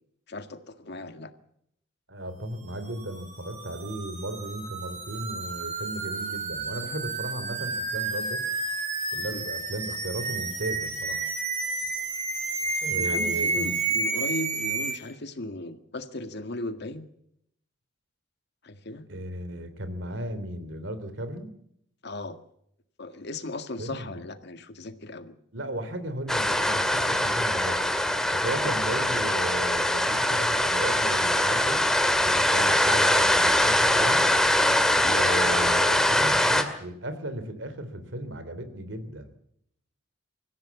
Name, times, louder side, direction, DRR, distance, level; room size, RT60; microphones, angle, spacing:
voice 1, 0.3-1.3 9.3-9.4 12.9-17.0 18.6-19.0 22.0-22.4 23.0-25.3 28.6-28.7 32.6-32.8 35.0-35.2, left 2 dB, 60° left, 8 dB, 1.9 m, -37 dB
voice 2, 2.1-8.4 9.1-11.3 12.8-13.8 19.1-21.5 23.8-24.2 25.5-27.8 28.3-31.8 32.2-34.2 35.0-39.3, right 1 dB, 70° right, 11 dB, 3.3 m, -35 dB
sound 1, 2.7-15.0, right 3 dB, 40° right, 4.7 m, -31 dB
sound 2, 26.3-36.6, left 1 dB, 5° left, 2.2 m, -22 dB
25.5 x 15.0 x 8.4 m, 0.74 s
head